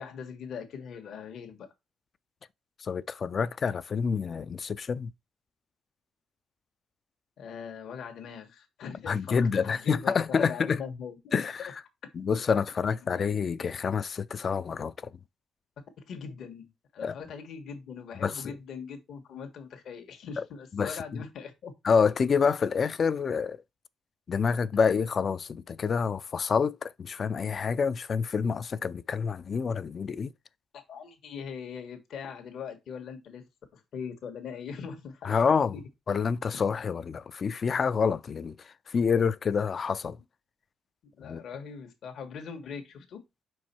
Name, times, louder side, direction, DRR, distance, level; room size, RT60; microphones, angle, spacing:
voice 1, 0.0-1.7 7.4-11.5 16.0-21.7 30.7-33.4 33.7-35.4 35.7-35.8 41.1-43.2, left 6 dB, 70° left, 1.3 m, -41 dB
voice 2, 2.8-5.1 9.1-10.8 11.3-11.7 12.1-15.1 17.0-17.2 18.2-18.5 20.4-20.5 20.7-21.0 21.8-23.6 24.3-30.3 35.2-35.8 36.1-40.2 41.2-41.4, left 6 dB, 40° left, 0.4 m, -27 dB
5.3 x 4.7 x 4.3 m
cardioid pair, 120°, 0 cm